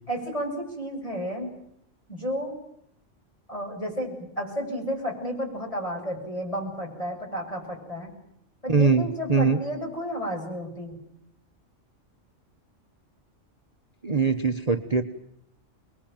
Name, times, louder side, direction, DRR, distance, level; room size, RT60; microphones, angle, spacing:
voice 1, 0.1-1.5 2.1-2.5 3.5-8.1 8.6-11.0, equal, 25° left, 0 dB, 7.7 m, -32 dB
voice 2, 8.7-9.6 14.0-15.0, right 4 dB, 30° right, 5 dB, 1.2 m, -22 dB
27.0 x 21.5 x 9.1 m, 0.73 s
omnidirectional pair, 1.3 m